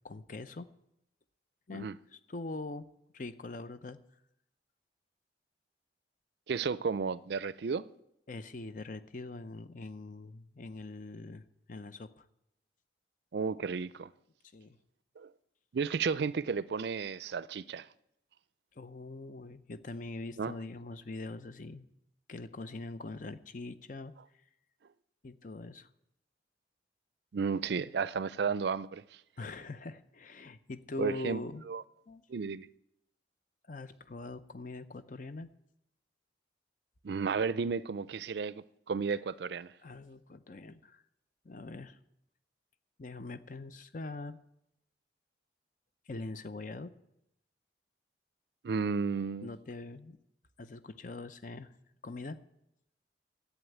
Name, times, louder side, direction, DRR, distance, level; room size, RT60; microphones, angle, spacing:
voice 1, 0.0-0.7 1.7-2.9 3.1-4.0 8.3-12.3 14.5-14.8 18.8-21.8 22.3-24.1 25.2-25.9 29.4-31.6 32.1-32.2 33.7-35.5 39.8-41.0 41.4-42.0 43.0-44.4 46.1-46.9 49.4-50.2 50.6-51.7 52.0-52.4, left 3 dB, 45° left, 0.7 m, -43 dB
voice 2, 6.5-7.9 13.3-14.1 15.2-15.3 15.7-17.9 20.4-20.5 27.3-29.0 31.0-31.4 31.7-31.8 32.3-32.7 37.0-39.7 48.6-49.5, right 5 dB, 65° right, 0.4 m, -33 dB
11.5 x 8.4 x 9.1 m
head